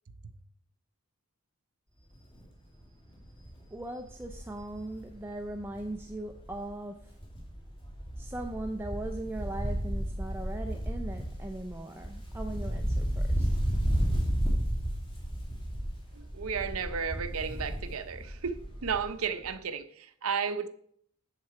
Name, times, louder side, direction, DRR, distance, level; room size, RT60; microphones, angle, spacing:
Wind, 2.1-2.4 2.8-2.9 3.2-6.7 7.0-19.2 19.4-19.5, equal, 25° left, 2.5 m, -33 dB
voice 1, 3.7-7.0 8.2-13.5, right 1 dB, 10° right, 0.5 m, -39 dB
voice 2, 16.1-20.7, right 6 dB, 70° right, 0.7 m, -33 dB
7.7 x 7.5 x 4.8 m
head